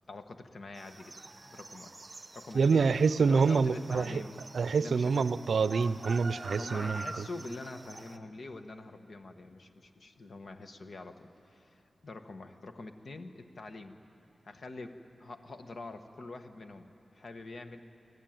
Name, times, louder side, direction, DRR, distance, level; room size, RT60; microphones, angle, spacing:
voice 1, 0.1-1.1 1.4-2.9 3.2-4.3 4.8-5.3 6.4-14.0 14.4-17.8, left 2 dB, 60° left, 7 dB, 1.2 m, -45 dB
sound 1, 0.7-8.2, right 2 dB, 25° right, 0.8 m, -46 dB
voice 2, 2.5-4.2 4.5-7.0, right 5 dB, 80° right, 15 dB, 0.5 m, -26 dB
23.5 x 15.5 x 9.2 m, 2.7 s
wide cardioid pair, 150°, 0 cm